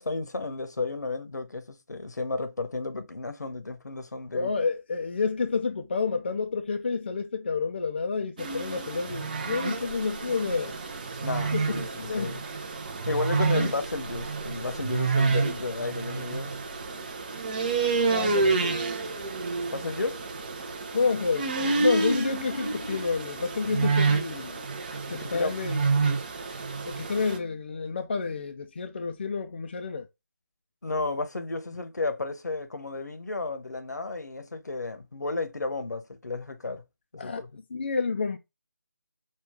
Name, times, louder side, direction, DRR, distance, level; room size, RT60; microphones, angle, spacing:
voice 1, 0.0-4.5 11.2-11.9 12.2-12.4 13.1-16.5 17.9-18.8 19.7-20.2 25.1-25.6 30.8-36.8 37.1-37.5, left 3 dB, 70° left, 0.9 m, -33 dB
voice 2, 4.3-10.8 11.5-12.5 13.5-13.7 18.1-18.8 20.9-24.6 25.1-25.8 26.9-30.1 37.2-37.4 37.7-38.4, left 4 dB, 35° left, 0.4 m, -29 dB
sound 1, 8.4-27.4, right 4 dB, 30° right, 0.6 m, -29 dB
5.6 x 2.4 x 3.5 m
figure-of-eight pair, 155°, 10 cm